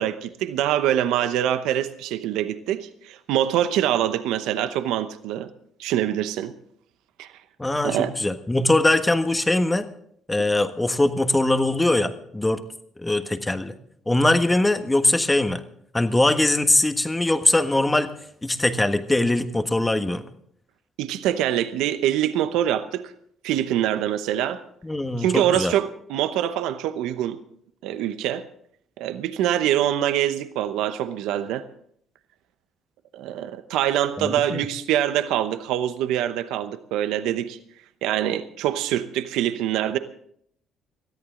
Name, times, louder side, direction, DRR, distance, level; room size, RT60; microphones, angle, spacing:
voice 1, 0.0-5.5 5.8-6.5 7.2-7.3 7.8-8.1 21.0-23.1 23.4-24.6 25.2-27.4 27.8-28.4 29.0-31.6 33.1-37.6 38.0-40.0, right 11 dB, 85° right, 0.8 m, -24 dB
voice 2, 7.6-9.9 10.3-12.6 13.0-13.7 14.1-15.6 15.9-18.1 18.4-20.2 24.8-25.7 34.2-34.7, left 2 dB, 15° left, 1.4 m, -21 dB
20.0 x 13.5 x 3.8 m
supercardioid pair, 80°, 0 cm